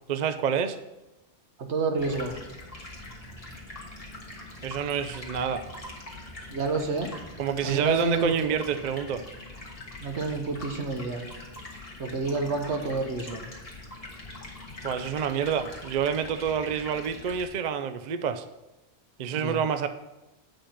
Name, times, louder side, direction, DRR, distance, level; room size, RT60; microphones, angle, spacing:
voice 1, 0.1-0.8 4.6-5.6 7.4-9.2 14.8-18.4 19.2-19.9, right 7 dB, 55° right, 9 dB, 0.5 m, -28 dB
voice 2, 1.6-2.3 6.5-7.1 7.6-8.5 10.0-11.3 12.0-13.4 19.3-19.6, right 4 dB, 75° right, 5 dB, 1.3 m, -29 dB
Stream, 2.0-17.5, left 2 dB, 30° left, 1.6 m, -43 dB
8.4 x 5.3 x 5.8 m, 1.0 s
omnidirectional pair, 1.2 m